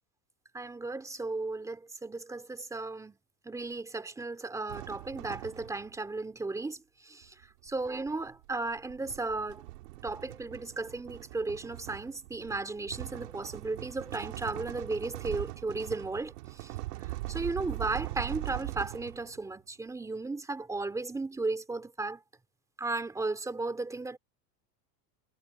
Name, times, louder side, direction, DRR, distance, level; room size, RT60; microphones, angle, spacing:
voice 1, 0.5-3.2 3.4-7.3 7.6-9.6 10.0-16.7 17.3-22.2 22.8-24.2, right 3 dB, 5° right, 2.8 m, -35 dB
sound 1, 4.7-6.0 7.2-19.4, right 19 dB, 75° right, 2.3 m, -41 dB
supercardioid pair, 160°, 48 cm